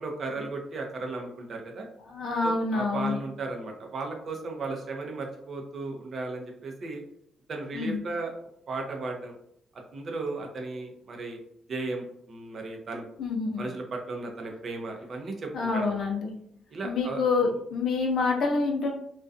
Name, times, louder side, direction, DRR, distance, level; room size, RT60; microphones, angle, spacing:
voice 1, 0.0-1.9 2.4-7.0 7.5-8.3 8.7-9.4 9.9-11.4 11.7-13.1 13.6-16.1 16.7-17.2, right 3 dB, 45° right, 2 dB, 0.5 m, -35 dB
voice 2, 2.1-3.2 7.7-8.0 13.2-13.6 15.5-16.3 16.8-18.9, left 4 dB, 65° left, 0 dB, 0.6 m, -27 dB
2.4 x 2.2 x 2.5 m, 0.70 s
cardioid pair, 145°, 0 cm